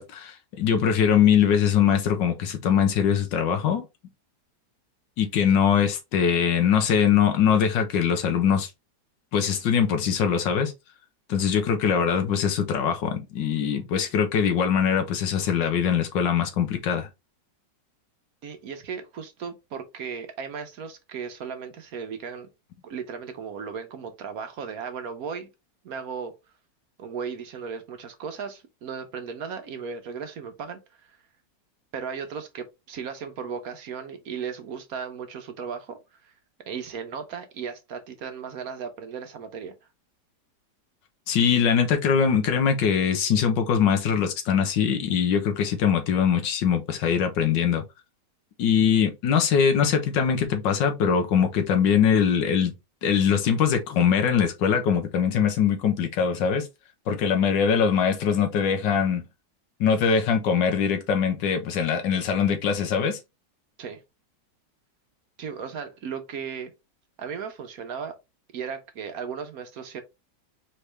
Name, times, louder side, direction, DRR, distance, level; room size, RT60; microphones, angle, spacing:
voice 1, 0.0-3.9 5.2-8.7 9.3-10.7 11.3-17.1 41.3-47.8 48.6-52.7 53.0-56.7 57.1-59.2 59.8-63.2, left 7 dB, 85° left, 1.6 m, -22 dB
voice 2, 18.4-22.5 22.8-25.5 25.8-26.3 27.0-30.8 31.9-36.3 36.6-39.7 63.8-64.0 65.4-66.7 67.2-68.2 68.5-70.0, right 6 dB, 65° right, 1.1 m, -36 dB
4.4 x 3.3 x 3.2 m
omnidirectional pair, 1.9 m